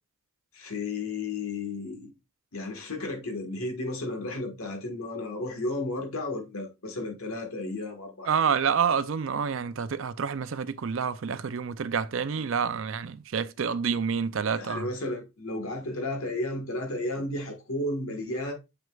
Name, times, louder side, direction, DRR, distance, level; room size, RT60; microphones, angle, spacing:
voice 1, 0.5-2.1 2.5-8.3 14.5-18.5, left 2 dB, 80° left, 1.5 m, -33 dB
voice 2, 8.3-14.9, right 6 dB, 65° right, 0.5 m, -28 dB
7.0 x 6.1 x 2.4 m
head